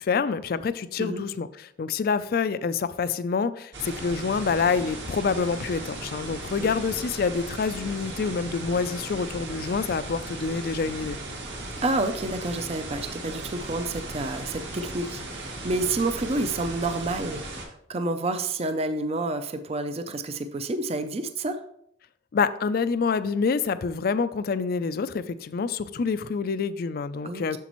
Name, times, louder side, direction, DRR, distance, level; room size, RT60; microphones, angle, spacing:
voice 1, 0.0-11.2 22.3-27.6, left 5 dB, 50° left, 14 dB, 0.3 m, -27 dB
sound 1, 3.7-17.6, right 2 dB, 60° right, 1.7 m, -37 dB
voice 2, 11.8-21.6 27.2-27.6, right 2 dB, 30° right, 9 dB, 0.4 m, -29 dB
8.2 x 6.8 x 3.0 m, 0.73 s
head